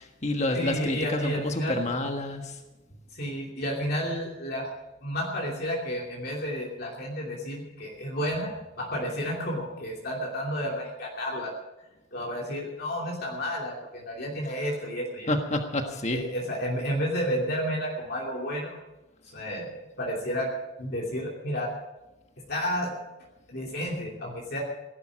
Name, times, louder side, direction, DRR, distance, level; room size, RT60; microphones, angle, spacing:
voice 1, 0.0-2.5 15.3-16.2, left 1 dB, 35° left, 4 dB, 1.5 m, -29 dB
voice 2, 0.5-1.8 3.1-4.7 5.0-8.5 8.8-11.5 12.1-15.3 16.1-18.8 19.2-20.5 20.8-21.7 22.5-22.9 23.5-24.6, equal, 55° left, -2 dB, 2.9 m, -31 dB
17.0 x 12.0 x 6.3 m, 1.0 s
head